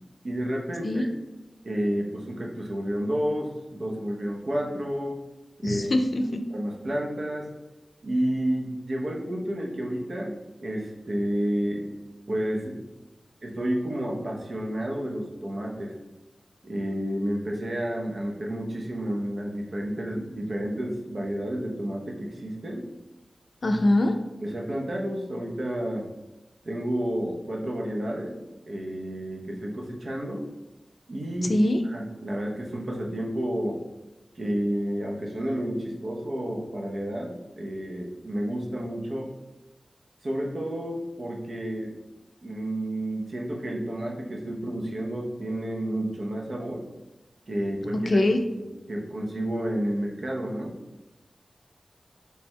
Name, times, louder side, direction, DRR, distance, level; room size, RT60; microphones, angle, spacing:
voice 1, 0.2-1.1 1.6-5.2 5.6-6.0 6.5-7.5 8.0-11.9 12.3-12.9 13.4-16.0 16.6-22.9 24.4-26.1 26.6-28.4 28.7-30.4 31.1-31.6 31.8-33.8 34.4-39.3 40.2-42.0 42.4-46.8 47.5-48.6 48.9-50.8, right 1 dB, 60° right, -1 dB, 0.6 m, -30 dB
voice 2, 5.6-6.2 23.6-24.1 31.5-31.8 48.1-48.4, left 1 dB, 60° left, 5 dB, 0.4 m, -22 dB
3.4 x 2.2 x 4.3 m, 1.1 s
wide cardioid pair, 75°, 0 cm